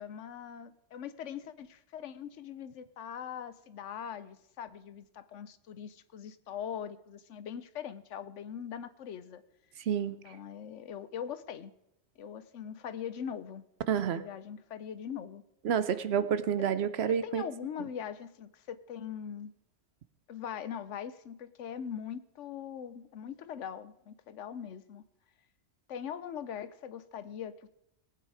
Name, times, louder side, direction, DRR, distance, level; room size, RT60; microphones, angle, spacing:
voice 1, 0.0-9.4 10.2-11.7 12.2-13.7 14.1-15.4 17.2-19.5 20.3-25.0 25.9-27.7, left 8 dB, 75° left, 14 dB, 1.0 m, -41 dB
voice 2, 13.9-14.2 15.6-17.5, right 8 dB, 65° right, 14 dB, 0.8 m, -29 dB
19.0 x 9.0 x 4.8 m, 0.83 s
omnidirectional pair, 1.3 m